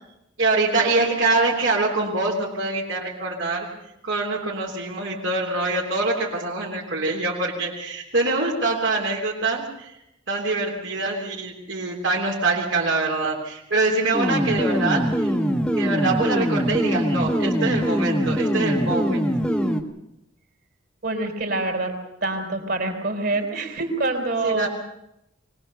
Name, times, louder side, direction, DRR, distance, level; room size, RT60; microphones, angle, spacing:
voice 1, 0.4-3.7 4.0-9.9 10.3-15.3 15.8-19.2 23.3-23.4 24.4-24.7, right 3 dB, 70° right, -3 dB, 3.3 m, -24 dB
sound 1, 14.1-19.8, equal, 5° left, 1.1 m, -23 dB
voice 2, 21.0-21.9 22.2-24.7, right 2 dB, 50° right, 3 dB, 4.1 m, -25 dB
23.5 x 19.0 x 6.9 m, 0.86 s
head